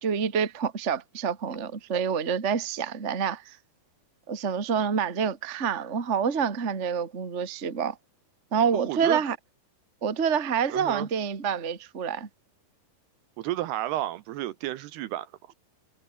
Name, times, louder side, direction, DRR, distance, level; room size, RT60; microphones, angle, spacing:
voice 1, 0.0-3.4 4.3-8.0 8.5-9.3 10.0-12.3, right 7 dB, 25° right, 1.4 m, -27 dB
voice 2, 8.7-9.2 10.7-11.1 13.4-15.3, right 14 dB, 75° right, 2.8 m, -31 dB
omnidirectional pair, 5.1 m